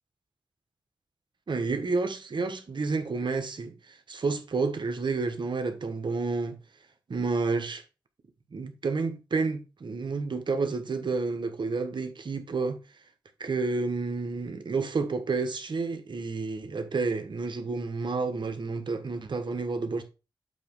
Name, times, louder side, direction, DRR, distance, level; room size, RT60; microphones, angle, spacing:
voice 1, 1.5-6.6 7.1-7.8 8.5-12.8 13.4-20.0, right 4 dB, 65° right, 1.3 m, -30 dB
7.7 x 3.0 x 5.4 m
cardioid pair, 40°, 9 cm